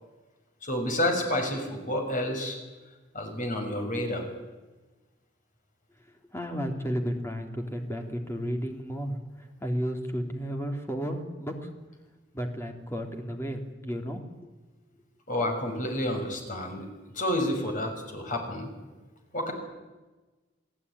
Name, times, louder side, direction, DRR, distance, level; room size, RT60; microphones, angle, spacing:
voice 1, 0.6-2.6 3.1-4.3 15.3-16.9 17.1-18.7 19.3-19.5, left 1 dB, 45° left, 4 dB, 6.2 m, -29 dB
voice 2, 6.3-11.7 12.3-14.5, equal, 15° left, 3 dB, 3.4 m, -33 dB
29.5 x 17.0 x 9.9 m, 1.2 s
head